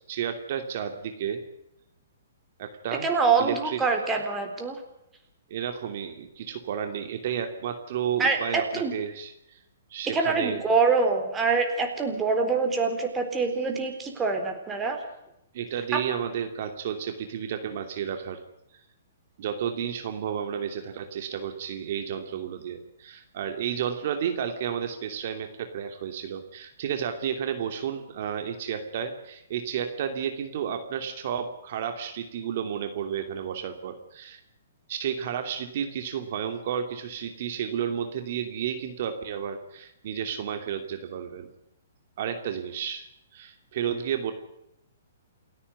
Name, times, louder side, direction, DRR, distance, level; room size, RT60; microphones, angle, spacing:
voice 1, 0.0-1.4 2.6-3.1 3.4-3.8 4.1-4.2 5.5-9.6 9.9-10.6 15.5-18.4 19.4-34.4 34.9-41.5 42.2-43.1 43.3-44.3, right 8 dB, 50° right, 6 dB, 2.7 m, -32 dB
voice 2, 3.0-4.8 8.2-8.9 10.1-15.0 15.9-16.0, right 4 dB, 15° right, 4 dB, 3.9 m, -25 dB
29.0 x 9.7 x 9.6 m, 0.82 s
hypercardioid pair, 150°, 0 cm